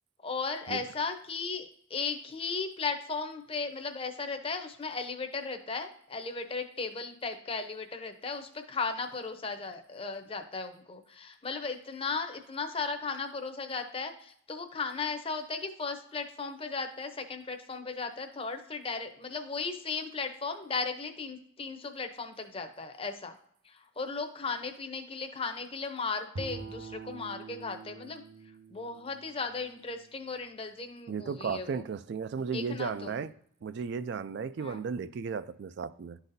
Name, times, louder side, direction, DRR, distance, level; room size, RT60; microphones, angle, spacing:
voice 1, 0.2-23.3 23.6-28.2 28.7-31.8 32.3-33.2 34.6-34.8, left 4 dB, 25° left, 0.6 m, -36 dB
Bowed string instrument, 26.3-30.6, right 3 dB, 80° right, 0.8 m, -45 dB
voice 2, 31.1-33.3 33.6-36.2, right 5 dB, 55° right, 0.3 m, -35 dB
11.0 x 4.1 x 2.6 m
head